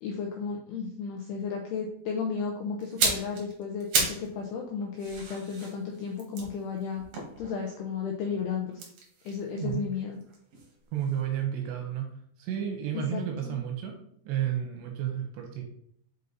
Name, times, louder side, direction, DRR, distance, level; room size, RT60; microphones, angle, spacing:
voice 1, 0.0-7.0 7.4-8.8 9.3-10.2 12.9-13.6, left 5 dB, 80° left, 1 dB, 2.3 m, -34 dB
sound 1, 2.8-4.3 4.6-7.9 8.7-10.7 11.0-11.2, right 4 dB, 60° right, 1.8 m, -33 dB
voice 2, 10.9-12.1 12.4-14.0 14.3-15.6, right 9 dB, 80° right, 3 dB, 2.7 m, -31 dB
6.7 x 5.3 x 4.0 m, 0.66 s
omnidirectional pair, 5.6 m